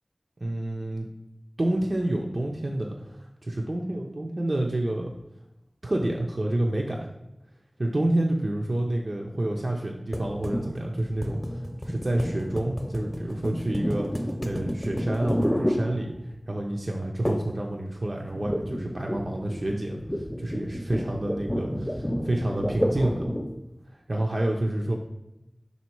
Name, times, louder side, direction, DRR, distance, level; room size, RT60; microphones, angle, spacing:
voice 1, 0.4-1.1 1.6-5.1 5.8-7.1 7.8-11.4 11.8-16.1 16.5-23.3 23.9-25.0, right 1 dB, 60° right, 0 dB, 0.6 m, -28 dB
sound 1, 10.1-16.4 17.2-17.6 17.9-23.6, equal, 10° left, 0.8 m, -30 dB
5.4 x 4.2 x 4.5 m, 0.92 s
wide cardioid pair, 45°, 0 cm